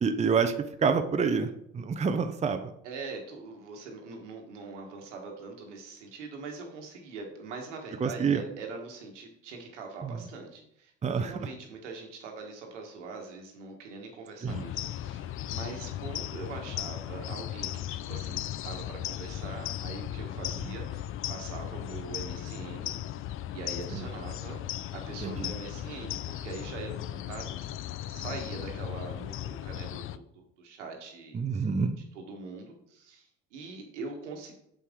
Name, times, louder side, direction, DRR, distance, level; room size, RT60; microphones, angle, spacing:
voice 1, 0.0-0.5 0.8-2.7 8.0-8.4 10.0-10.1 11.0-11.3 14.4-14.6 23.9-24.0 25.2-25.5 31.3-32.0, right 5 dB, 20° right, 9 dB, 0.6 m, -27 dB
voice 2, 2.8-10.9 11.2-23.0 23.5-24.6 24.9-27.7 28.1-31.7 32.1-34.5, right 4 dB, 85° right, 2 dB, 1.5 m, -43 dB
sound 1, 14.5-30.2, left 12 dB, 40° left, 0.4 m, -37 dB
6.6 x 5.5 x 3.7 m, 0.76 s
hypercardioid pair, 70°, 35 cm